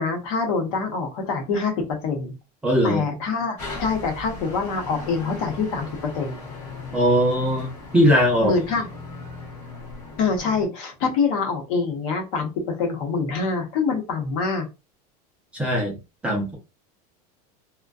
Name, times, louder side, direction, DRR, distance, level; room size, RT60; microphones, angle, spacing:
voice 1, 0.0-1.7 2.0-2.3 2.8-6.4 8.4-8.9 10.2-14.7, left 4 dB, 55° left, 0.8 m, -25 dB
voice 2, 2.6-3.0 6.9-8.5 15.5-16.0 16.2-16.5, equal, 5° right, 0.5 m, -20 dB
sound 1, 3.6-10.7, left 3 dB, 30° left, 1.0 m, -37 dB
2.5 x 2.2 x 2.3 m
supercardioid pair, 175°, 20 cm